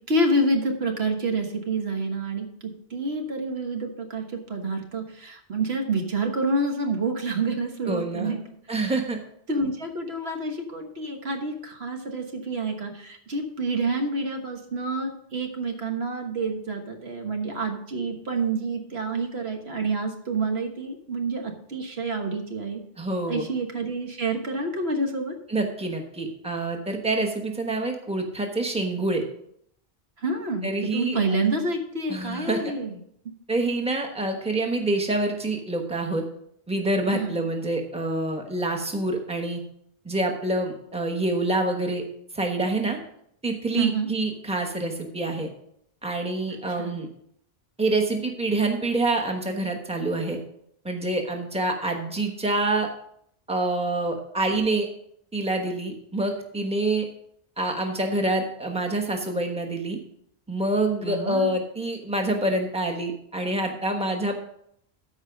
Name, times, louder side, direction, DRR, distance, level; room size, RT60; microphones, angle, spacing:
voice 1, 0.1-2.5 2.9-4.2 4.5-8.4 8.8-8.9 9.5-22.8 23.3-25.3 30.2-32.9 37.1-37.3 43.7-44.1 46.8-47.0 60.9-61.5, right 2 dB, 80° right, 3 dB, 1.6 m, -28 dB
voice 2, 7.8-8.4 8.7-9.2 23.0-23.5 25.5-29.2 30.6-31.2 32.1-32.7 33.5-36.2 36.7-39.6 40.0-42.0 42.3-43.0 43.4-45.5 46.0-47.1 47.8-50.4 50.8-52.9 53.5-54.9 55.3-57.1 57.6-60.0 60.5-64.4, right 2 dB, 5° right, 3 dB, 1.2 m, -26 dB
13.5 x 4.9 x 5.1 m, 0.71 s
omnidirectional pair, 1.0 m